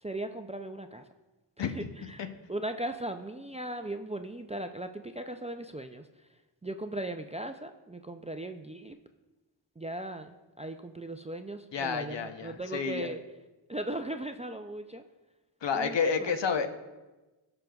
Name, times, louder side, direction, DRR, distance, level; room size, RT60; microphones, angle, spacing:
voice 1, 0.0-1.0 1.6-6.1 6.6-9.0 9.8-13.2 13.7-15.0 15.7-16.4, right 1 dB, 15° right, 7 dB, 0.3 m, -38 dB
voice 2, 11.7-13.1 15.6-16.7, left 6 dB, 70° left, 7 dB, 0.8 m, -30 dB
15.5 x 5.9 x 2.3 m, 1.2 s
wide cardioid pair, 75°, 45 cm